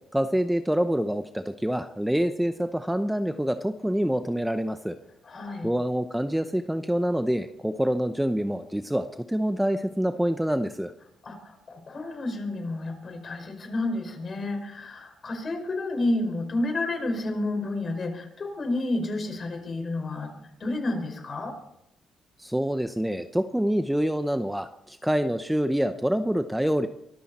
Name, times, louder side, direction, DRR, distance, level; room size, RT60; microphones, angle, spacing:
voice 1, 0.1-5.0 5.6-10.9 22.4-26.9, equal, 5° right, 9 dB, 0.8 m, -26 dB
voice 2, 5.2-5.7 11.2-21.5, left 2 dB, 40° left, 4 dB, 5.3 m, -30 dB
24.0 x 13.5 x 4.3 m, 0.82 s
cardioid pair, 90°, 0 cm